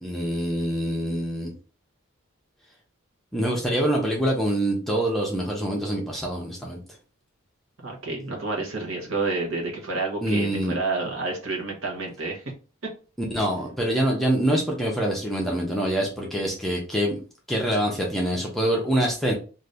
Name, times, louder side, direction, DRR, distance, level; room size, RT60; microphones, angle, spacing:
voice 1, 0.0-1.5 3.3-6.8 10.2-10.8 13.3-17.2 17.5-19.3, right 1 dB, ahead, -2 dB, 0.6 m, -25 dB
voice 2, 7.8-12.4, right 3 dB, 70° right, -1 dB, 1.0 m, -29 dB
2.6 x 2.6 x 3.3 m, 0.35 s
head